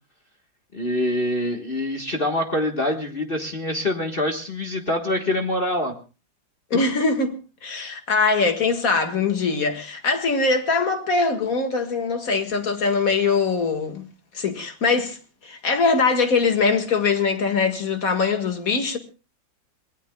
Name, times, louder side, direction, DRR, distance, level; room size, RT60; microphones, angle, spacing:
voice 1, 0.7-5.9, left 1 dB, 30° left, 1.5 m, -25 dB
voice 2, 6.7-7.4 7.6-14.1 14.3-19.0, left 4 dB, 45° left, 2.1 m, -22 dB
26.0 x 20.0 x 2.3 m
omnidirectional pair, 2.1 m